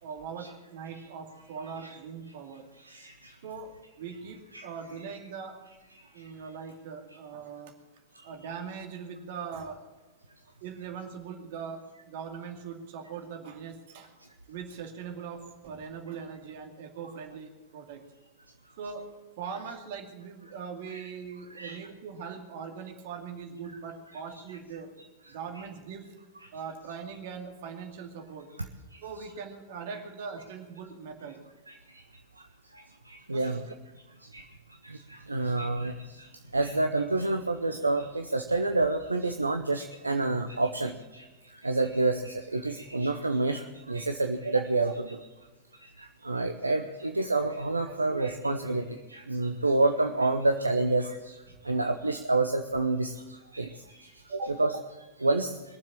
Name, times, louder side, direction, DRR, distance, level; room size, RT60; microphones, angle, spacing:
voice 1, 0.0-2.7 3.4-5.6 6.1-7.7 8.2-9.8 10.6-14.1 14.5-18.0 18.8-24.9 25.3-26.1 26.5-28.5 29.0-31.4 33.3-33.6 47.8-48.5 54.3-54.5, right 6 dB, 50° right, 4 dB, 2.3 m, -41 dB
voice 2, 2.8-3.3 4.5-4.7 20.9-21.0 21.5-21.8 25.6-25.7 31.7-31.8 32.7-33.6 34.3-34.4 34.8-41.2 41.6-45.2 45.8-51.4 51.6-53.7 54.0-54.8 55.2-55.6, right 2 dB, 80° right, 6 dB, 0.8 m, -28 dB
22.0 x 7.4 x 8.9 m, 1.2 s
figure-of-eight pair, 90°, 0 cm